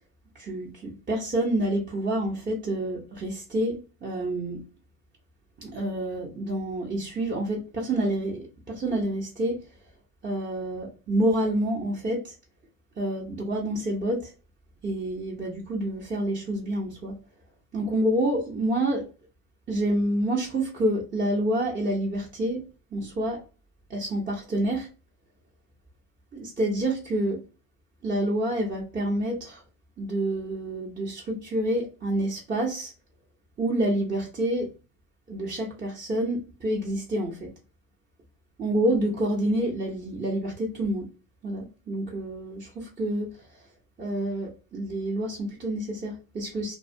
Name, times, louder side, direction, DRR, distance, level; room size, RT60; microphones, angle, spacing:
voice 1, 0.3-4.6 5.6-9.7 10.2-12.4 13.0-14.3 14.8-17.1 17.7-19.1 19.7-22.6 22.9-23.4 23.9-24.9 26.3-27.4 28.0-29.6 30.0-32.9 33.6-34.7 35.3-37.5 38.6-41.1 41.4-43.7 44.0-46.8, right 1 dB, 20° right, 0.6 m, -28 dB
2.3 x 2.1 x 2.6 m
supercardioid pair, 95°, 44 cm